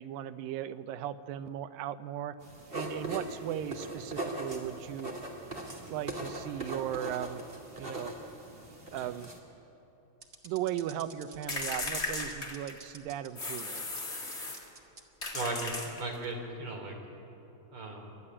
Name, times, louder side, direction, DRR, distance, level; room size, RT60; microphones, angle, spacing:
voice 1, 0.0-2.4 2.7-5.1 5.9-7.4 7.8-8.2 8.9-9.3 10.4-13.8, right 11 dB, 90° right, 11 dB, 2.5 m, -37 dB
sound 1, 2.4-9.4, right 1 dB, 20° right, 2.1 m, -40 dB
sound 2, 10.2-14.0 14.3-15.0 15.4-15.5 16.2-16.5, right 3 dB, 55° right, 0.7 m, -50 dB
sound 3, 11.5-12.9 13.4-14.7 15.2-16.3, left 2 dB, 20° left, 2.1 m, -36 dB
voice 2, 15.3-17.0 17.7-18.2, right 2 dB, 40° right, 1 dB, 3.9 m, -37 dB
29.0 x 12.5 x 9.9 m, 3.0 s
omnidirectional pair, 3.9 m